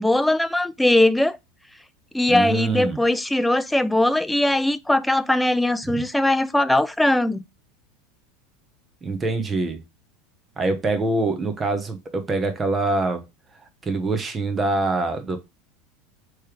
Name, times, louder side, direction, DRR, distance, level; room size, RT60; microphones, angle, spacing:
voice 1, 0.0-1.4 2.1-7.4, left 1 dB, 5° left, 0.4 m, -20 dB
voice 2, 2.3-3.0 5.8-6.0 9.0-9.8 10.6-13.2 13.8-15.4, right 3 dB, 25° right, 1.1 m, -24 dB
3.3 x 3.2 x 4.6 m
hypercardioid pair, 90°, 0 cm